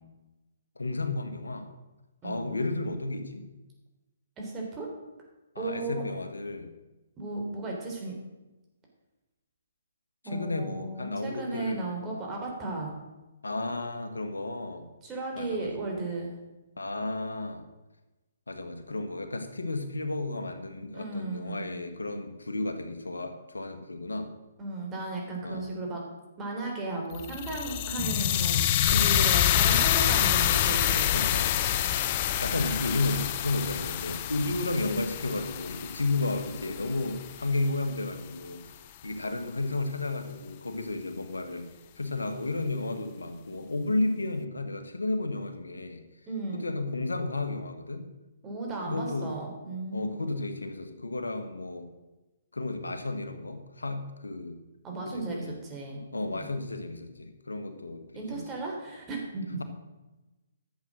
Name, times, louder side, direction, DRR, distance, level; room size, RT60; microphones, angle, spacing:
voice 1, 0.7-1.7 2.2-3.4 5.5-6.7 10.2-11.8 13.4-14.9 15.3-15.7 16.8-17.6 18.5-24.3 25.4-25.7 28.9-29.3 31.1-31.6 32.4-38.6 39.0-41.7 42.0-46.0 46.5-48.1 48.8-49.3 49.9-51.9 52.5-54.6 55.0-55.5 56.1-58.5, left 2 dB, 90° left, 7 dB, 1.5 m, -32 dB
voice 2, 4.4-4.9 5.6-6.0 7.2-8.2 10.2-12.9 15.0-16.3 20.9-21.8 24.6-26.0 26.4-31.3 46.3-46.7 48.4-50.1 54.8-56.0 56.3-56.5 58.1-59.6, right 3 dB, 20° right, -1 dB, 3.6 m, -35 dB
sound 1, 27.1-37.3, left 11 dB, 40° left, 0.7 m, -27 dB
11.5 x 7.8 x 6.2 m, 1.1 s
figure-of-eight pair, 135°, 0 cm